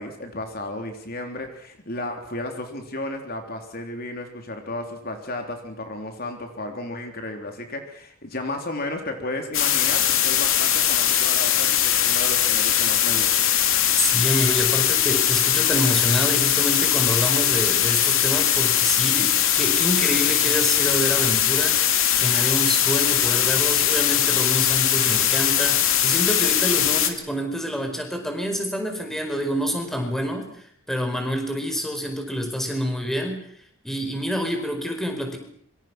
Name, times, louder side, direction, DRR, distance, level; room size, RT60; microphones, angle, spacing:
voice 1, 0.0-13.5, left 2 dB, 45° left, 4 dB, 3.6 m, -33 dB
sound 1, 9.5-27.1, left 10 dB, 65° left, 2.8 m, -20 dB
voice 2, 14.0-33.5 33.8-35.4, equal, ahead, 4 dB, 4.8 m, -27 dB
26.0 x 25.5 x 6.2 m, 0.63 s
head